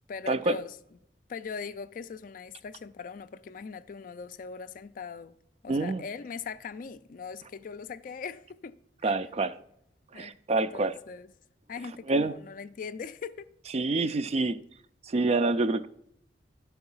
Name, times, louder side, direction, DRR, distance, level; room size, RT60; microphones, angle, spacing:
voice 1, 0.1-0.7 1.3-5.4 5.6-9.1 10.1-10.4 10.7-11.3 11.7-13.5 13.9-14.1, left 5 dB, 50° left, 0.3 m, -40 dB
voice 2, 5.7-6.0 9.0-9.6 10.1-11.0 12.1-12.3 13.7-14.6 15.1-15.9, right 3 dB, 35° right, 0.4 m, -27 dB
11.5 x 4.8 x 5.5 m
head